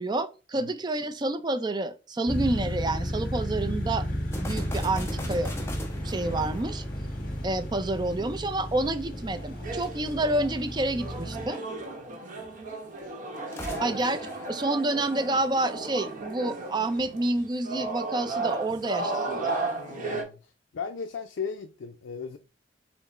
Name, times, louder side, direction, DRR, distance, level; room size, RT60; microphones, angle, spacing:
voice 1, 0.0-4.1 4.4-5.5 6.0-6.8 7.4-11.6 13.8-14.2 14.5-19.6, right 2 dB, 25° right, 0.4 m, -28 dB
sound 1, 2.3-11.4, equal, 45° left, 1.6 m, -33 dB
sound 2, 4.3-7.8 13.4-15.5, left 1 dB, 15° left, 0.8 m, -39 dB
sound 3, 9.3-20.2, right 3 dB, 45° right, 0.9 m, -35 dB
voice 2, 13.6-14.0 18.7-18.8 19.8-22.4, left 6 dB, 80° left, 0.4 m, -37 dB
5.8 x 2.0 x 4.2 m
head